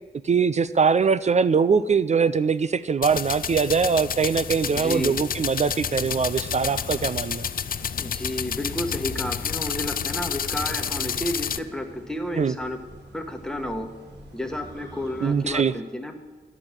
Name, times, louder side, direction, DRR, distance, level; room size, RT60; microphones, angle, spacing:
voice 1, 0.2-7.5 12.4-12.5 15.2-15.7, right 5 dB, 40° right, 14 dB, 0.4 m, -22 dB
sound 1, 3.0-11.6, left 8 dB, 55° left, 0.4 m, -30 dB
sound 2, 3.6-15.6, equal, 85° right, 2.9 m, -45 dB
voice 2, 4.7-5.2 8.0-12.8 13.1-13.9 14.3-16.2, left 1 dB, 5° left, 4 dB, 1.2 m, -31 dB
11.5 x 6.1 x 8.9 m, 1.4 s
wide cardioid pair, 105°, 18 cm